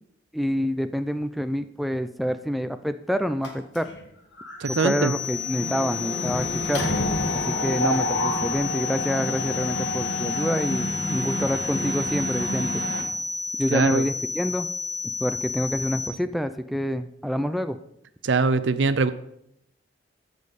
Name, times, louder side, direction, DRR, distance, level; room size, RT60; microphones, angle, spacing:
voice 1, 0.3-3.9 4.7-6.9 7.3-12.8 13.6-14.7 15.2-17.8, equal, ahead, 9 dB, 0.3 m, -27 dB
Mechanisms, 3.4-4.0 4.4-4.6 4.8-13.0, left 1 dB, 65° left, 1.4 m, -29 dB
sound 1, 4.6-16.1, left 5 dB, 20° right, 0.8 m, -32 dB
voice 2, 4.6-5.1 13.7-14.0 18.2-19.1, right 4 dB, 75° right, 14 dB, 0.5 m, -22 dB
14.5 x 5.2 x 4.1 m, 0.76 s
head